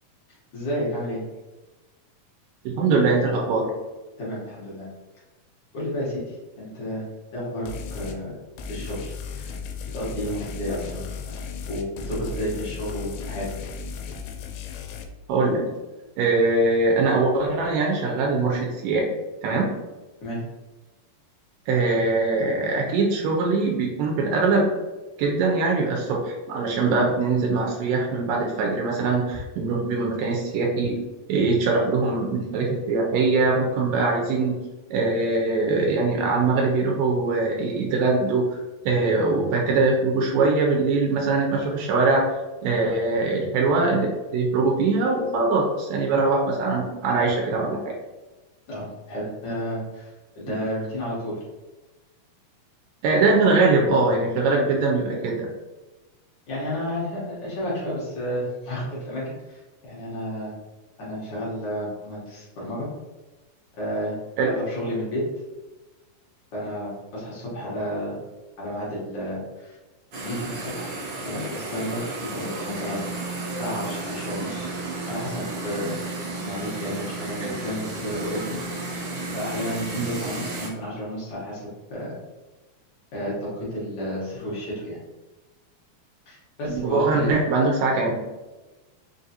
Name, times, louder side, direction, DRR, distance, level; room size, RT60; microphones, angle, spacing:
voice 1, 0.5-1.2 4.2-4.9 5.7-7.0 7.3-8.4 8.7-9.5 9.9-13.5 20.2-20.4 48.7-51.4 56.5-60.5 61.0-62.9 63.8-64.1 64.4-65.2 66.5-68.1 68.6-69.8 70.1-70.9 71.2-72.0 72.3-74.7 75.1-76.0 76.4-78.6 78.8-78.9 79.3-82.1 83.1-85.0 86.3-87.3, equal, 70° left, -7 dB, 1.1 m, -32 dB
voice 2, 2.8-3.7 15.3-15.7 16.2-19.0 19.4-19.7 21.7-24.7 25.2-34.6 34.9-38.6 38.9-42.3 42.6-47.9 53.0-55.5 64.4-64.5 77.4-77.6 80.0-80.1 86.7-88.2, right 3 dB, 85° right, -1 dB, 2.3 m, -22 dB
sound 1, 7.7-8.2 8.6-15.0, left 4 dB, 85° left, 2.2 m, -35 dB
sound 2, 70.1-80.7, right 2 dB, 65° right, 1.3 m, -33 dB
5.2 x 2.5 x 2.7 m, 1.2 s
omnidirectional pair, 3.8 m